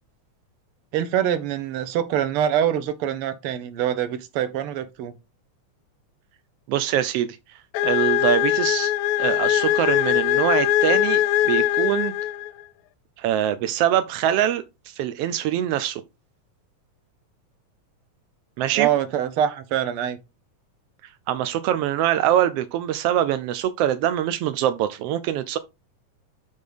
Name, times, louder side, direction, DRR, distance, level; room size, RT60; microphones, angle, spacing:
voice 1, 0.9-5.1 18.7-20.2, right 10 dB, 65° right, 1.4 m, -24 dB
voice 2, 6.7-7.4 7.8-8.9 9.2-12.1 13.2-14.6 15.0-16.0 18.6-18.9 21.3-25.6, right 11 dB, 85° right, 1.3 m, -23 dB
sound 1, 7.7-12.6, left 13 dB, 80° left, 1.7 m, -21 dB
7.7 x 3.7 x 5.0 m
omnidirectional pair, 3.4 m